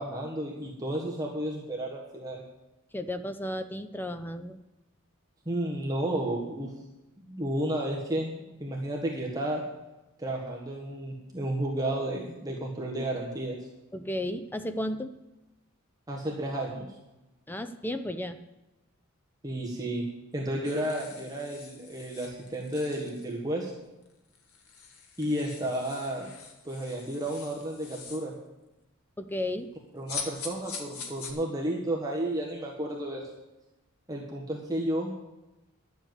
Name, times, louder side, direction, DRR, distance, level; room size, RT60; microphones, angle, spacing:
voice 1, 0.0-2.4 5.4-6.7 7.2-9.6 10.2-13.6 16.1-16.9 19.4-20.0 20.3-23.7 25.2-26.2 26.6-28.3 29.9-33.3 34.1-35.1, right 1 dB, 15° right, -2 dB, 1.4 m, -32 dB
voice 2, 2.9-4.6 13.9-15.1 17.5-18.4 29.2-29.7, left 1 dB, 10° left, 9 dB, 0.5 m, -33 dB
sound 1, 20.6-23.4 24.0-24.1 24.3-28.3 30.1-31.3, left 5 dB, 80° left, 1.8 m, -43 dB
11.5 x 7.3 x 8.0 m, 0.99 s
head